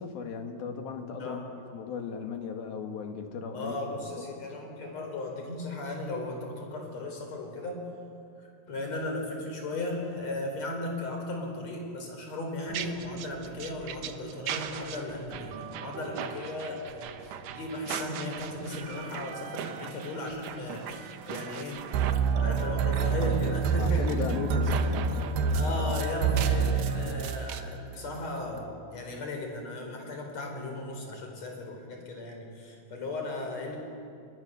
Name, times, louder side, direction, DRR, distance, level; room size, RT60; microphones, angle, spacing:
voice 1, 0.0-3.7 4.2-4.3 23.8-25.2, left 5 dB, 70° left, 5 dB, 3.5 m, -36 dB
voice 2, 3.5-7.9 8.7-21.8 22.4-24.1 25.5-33.8, left 2 dB, 45° left, 2 dB, 5.3 m, -36 dB
sound 1, 12.7-27.6, right 9 dB, 70° right, 2.3 m, -40 dB
sound 2, 21.9-27.6, right 5 dB, 90° right, 3.3 m, -27 dB
29.5 x 21.5 x 6.9 m, 2.5 s
omnidirectional pair, 4.6 m